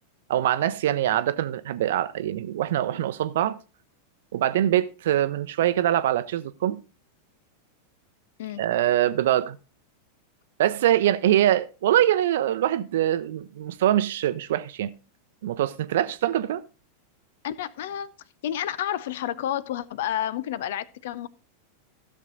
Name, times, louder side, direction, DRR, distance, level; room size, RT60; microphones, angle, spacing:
voice 1, 0.3-3.6 4.3-6.8 8.6-9.6 10.6-14.9 15.4-16.6, right 12 dB, 55° right, 0.7 m, -23 dB
voice 2, 17.4-18.1 18.4-21.3, left 11 dB, 55° left, 0.6 m, -30 dB
15.0 x 6.4 x 3.9 m
figure-of-eight pair, 90°, 0 cm